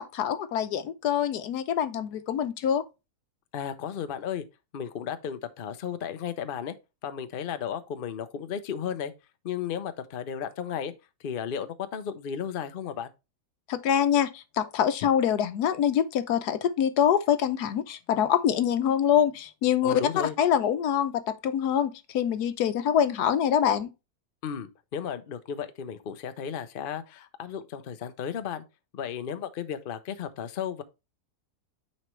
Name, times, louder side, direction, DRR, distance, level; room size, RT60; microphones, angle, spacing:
voice 1, 0.0-2.8 13.7-23.9, left 9 dB, 80° left, 1.3 m, -25 dB
voice 2, 3.5-4.4 4.7-6.7 7.0-9.1 9.4-10.9 11.2-13.1 19.8-20.4 24.4-28.6 28.9-30.8, left 8 dB, 50° left, 0.7 m, -34 dB
9.1 x 4.2 x 3.1 m
omnidirectional pair, 1.7 m